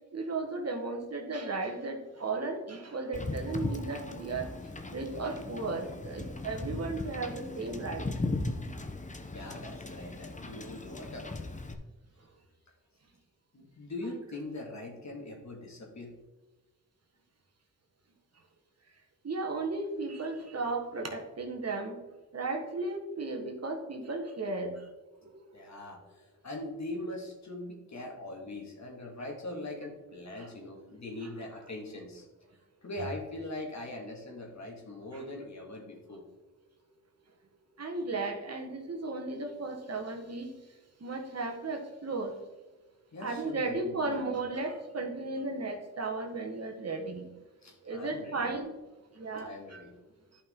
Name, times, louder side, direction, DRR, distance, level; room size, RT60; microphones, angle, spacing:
voice 1, 0.1-4.5 4.9-8.1 19.2-22.0 22.3-24.9 25.2-25.7 30.4-30.5 35.1-35.2 37.8-40.5 41.0-42.3 43.2-47.3 47.8-48.7 49.1-49.9, right 3 dB, 45° right, 2 dB, 1.7 m, -35 dB
Wind / Boat Water vehicle, 3.1-11.7, left 2 dB, 20° left, 1.0 m, -38 dB
voice 2, 9.3-11.3 13.5-16.2 25.5-32.3 32.8-36.2 43.1-44.2 47.6-48.5 49.4-50.0, left 2 dB, 55° left, 0 dB, 2.4 m, -41 dB
11.0 x 5.6 x 3.9 m, 1.1 s
cardioid pair, 75°, 34 cm